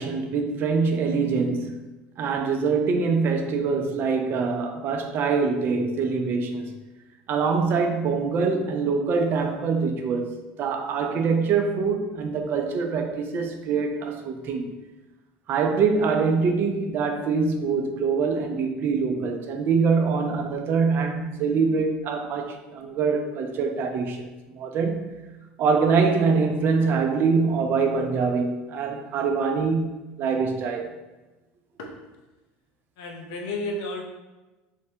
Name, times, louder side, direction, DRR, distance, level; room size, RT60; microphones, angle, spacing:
voice 1, 0.0-1.8 2.2-6.7 7.3-14.6 15.5-25.1 25.6-30.9, right 5 dB, 45° right, 4 dB, 0.4 m, -24 dB
voice 2, 33.0-34.0, left 2 dB, 75° left, 1 dB, 0.6 m, -32 dB
3.2 x 2.1 x 2.7 m, 1.1 s
supercardioid pair, 105°, 5 cm